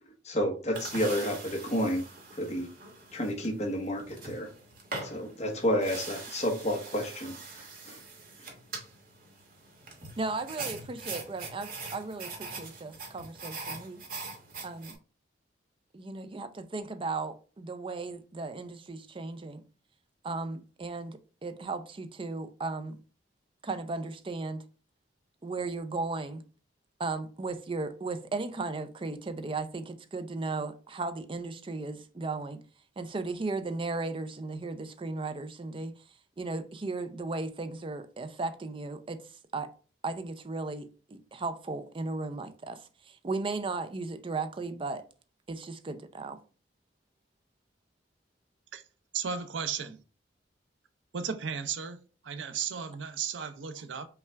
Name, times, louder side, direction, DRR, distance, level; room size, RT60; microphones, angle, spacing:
voice 1, 0.2-2.0 2.4-2.7 3.1-4.5 5.0-7.3 7.9-8.0, equal, 35° left, 1.1 m, -30 dB
sound 1, 0.7-14.9, right 3 dB, 50° right, 1.2 m, -43 dB
voice 2, 10.2-14.0 14.6-15.0 15.9-19.6 20.2-23.0 23.6-24.6 25.4-26.4 27.0-32.6 33.0-35.9 36.4-39.2 39.5-39.7 40.0-45.1 45.5-46.4, right 3 dB, 30° right, 0.4 m, -36 dB
voice 3, 49.1-50.0 51.1-54.1, right 6 dB, 80° right, 0.5 m, -35 dB
5.5 x 2.4 x 3.3 m
head